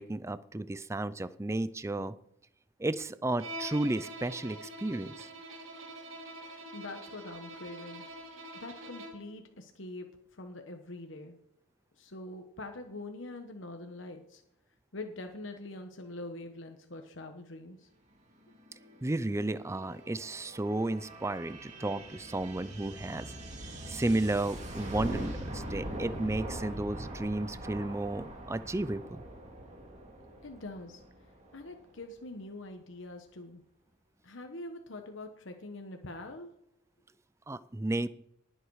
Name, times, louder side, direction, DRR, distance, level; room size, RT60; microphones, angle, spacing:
voice 1, 0.0-2.1 2.8-5.3 19.0-23.3 23.9-29.2 37.5-38.1, right 2 dB, 15° right, 15 dB, 0.4 m, -33 dB
Bowed string instrument, 3.4-9.3, right 1 dB, 85° right, 2.2 m, -45 dB
voice 2, 6.7-8.1 8.5-11.4 12.0-14.4 14.9-17.9 30.4-31.0 31.5-33.6 34.2-36.5, left 2 dB, 65° left, 5 dB, 1.2 m, -44 dB
sound 1, 18.5-32.0, right 1 dB, 35° right, 2.4 m, -42 dB
19.0 x 7.9 x 4.8 m, 0.71 s
head